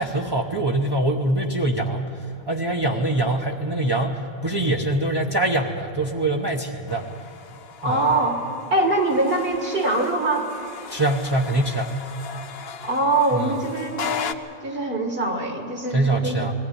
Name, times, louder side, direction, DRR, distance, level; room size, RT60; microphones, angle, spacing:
voice 1, 0.0-7.1 7.8-8.0 10.9-11.9 13.3-13.6 15.9-16.5, right 2 dB, 25° right, -1 dB, 0.9 m, -24 dB
sound 1, 6.9-14.3, left 7 dB, 60° left, 1.0 m, -37 dB
voice 2, 7.8-8.4 8.7-10.5 12.8-14.3 14.6-16.4, right 2 dB, 55° right, 2 dB, 1.9 m, -23 dB
21.0 x 15.5 x 9.9 m, 2.9 s
omnidirectional pair, 1.2 m